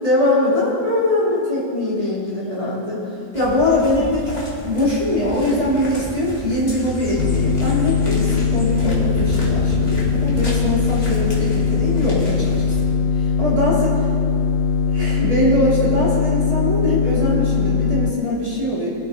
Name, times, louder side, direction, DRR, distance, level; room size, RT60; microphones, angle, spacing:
voice 1, 0.0-3.0 3.3-12.7 13.1-13.9 14.9-18.9, left 1 dB, 20° right, -8 dB, 3.1 m, -21 dB
sound 1, 3.3-12.8, right 1 dB, 35° left, 2.8 m, -31 dB
sound 2, 7.2-18.1, left 5 dB, 70° left, 0.7 m, -20 dB
21.5 x 8.5 x 5.2 m, 2.4 s
omnidirectional pair, 1.9 m